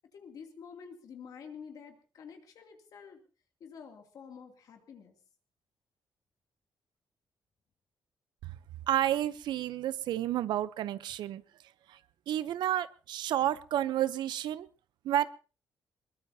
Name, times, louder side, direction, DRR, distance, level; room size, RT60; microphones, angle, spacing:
voice 1, 0.1-3.2 3.6-5.2, left 6 dB, 55° left, 3 dB, 2.7 m, -49 dB
voice 2, 8.9-11.4 11.9-12.0 12.3-14.7 15.0-15.3, right 12 dB, 85° right, 15 dB, 0.7 m, -30 dB
22.0 x 21.0 x 2.8 m, 0.35 s
cardioid pair, 165°, 7 cm